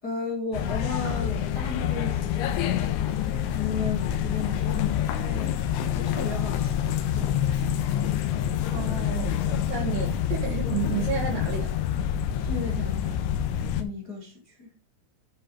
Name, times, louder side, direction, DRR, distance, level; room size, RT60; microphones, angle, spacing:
voice 1, 0.0-5.6 5.9-7.8 12.4-13.2 13.8-14.7, left 4 dB, 35° left, 1.6 m, -35 dB
sound 1, 0.5-13.8, left 9 dB, 75° left, 3.1 m, -27 dB
voice 2, 8.7-9.3 9.7-11.7, right 7 dB, 65° right, 3.4 m, -31 dB
12.0 x 5.0 x 5.1 m
omnidirectional pair, 6.0 m